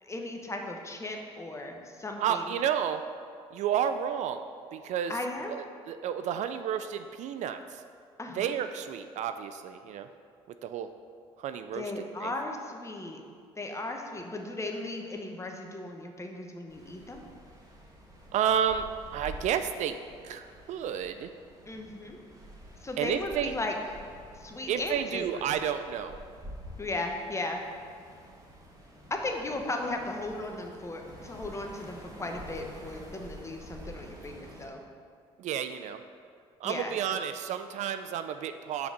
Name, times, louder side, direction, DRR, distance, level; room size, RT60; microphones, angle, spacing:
voice 1, 0.0-2.6 5.1-5.6 8.2-8.6 11.7-13.2 13.6-17.2 21.7-22.2 22.8-23.7 24.4-25.4 26.8-27.6 29.1-34.8 36.6-36.9, left 2 dB, 20° left, 2 dB, 1.0 m, -36 dB
voice 2, 2.2-3.0 3.5-4.4 4.7-5.1 5.5-7.8 8.4-10.1 10.6-10.9 11.4-11.9 12.2-12.3 18.3-18.9 19.1-19.9 20.2-21.3 23.0-23.5 24.7-26.2 35.4-36.0 36.6-38.9, right 9 dB, 60° right, 9 dB, 0.4 m, -31 dB
sound 1, 16.7-34.7, equal, 25° right, 1.7 m, -48 dB
5.8 x 4.1 x 6.0 m, 2.2 s
hypercardioid pair, 60°, 14 cm